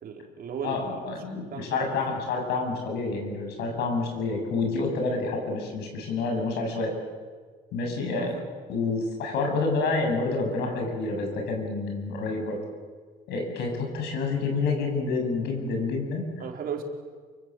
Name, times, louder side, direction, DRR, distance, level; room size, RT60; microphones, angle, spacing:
voice 1, 0.0-1.1 1.5-2.2 8.1-8.4 16.4-16.8, right 7 dB, 60° right, 3 dB, 4.0 m, -36 dB
voice 2, 0.6-6.9 7.7-8.3 8.7-12.6 13.3-16.2, left 3 dB, 80° left, 2 dB, 7.6 m, -28 dB
28.0 x 24.5 x 7.7 m, 1.5 s
cardioid pair, 110°, 17 cm